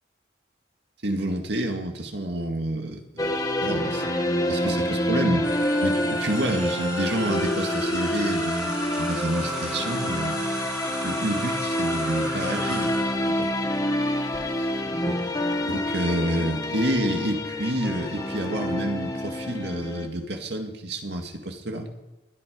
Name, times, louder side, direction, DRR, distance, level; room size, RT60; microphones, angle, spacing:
voice 1, 1.0-5.5 5.8-10.4 11.0-13.5 15.1-15.2 15.7-21.9, right 1 dB, 75° right, 3 dB, 2.1 m, -29 dB
sound 1, 3.2-20.1, left 1 dB, 20° left, 1.3 m, -27 dB
sound 2, 5.4-14.4, equal, 5° right, 2.9 m, -34 dB
20.5 x 9.9 x 5.2 m, 1.0 s
head